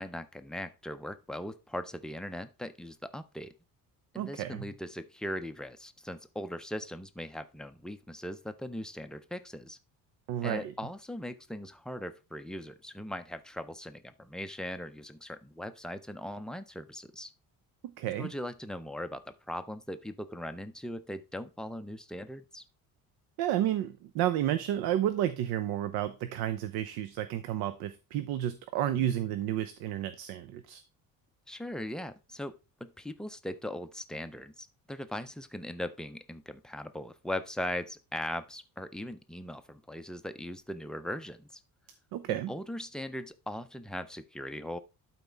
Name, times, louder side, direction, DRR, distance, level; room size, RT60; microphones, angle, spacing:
voice 1, 0.0-3.5 4.1-9.8 10.4-17.3 18.2-22.6 28.8-29.1 31.5-41.6 42.3-44.8, left 1 dB, ahead, 0.4 m, -39 dB
voice 2, 4.2-4.7 10.3-10.7 17.8-18.3 23.4-30.8 42.1-42.5, right 12 dB, 85° right, 0.7 m, -31 dB
12.0 x 4.2 x 3.4 m
cardioid pair, 145°, 37 cm